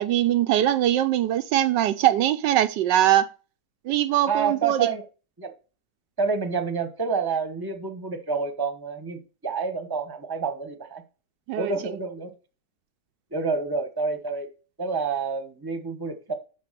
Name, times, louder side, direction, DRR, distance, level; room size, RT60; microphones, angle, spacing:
voice 1, 0.0-3.3 3.8-4.9 11.5-11.7, right 12 dB, 80° right, 1.3 m, -22 dB
voice 2, 4.3-5.0 5.4-5.5 6.2-11.0 11.6-12.3 13.3-14.5 14.8-16.3, right 5 dB, 15° right, 1.1 m, -28 dB
11.5 x 4.5 x 6.8 m
omnidirectional pair, 1.9 m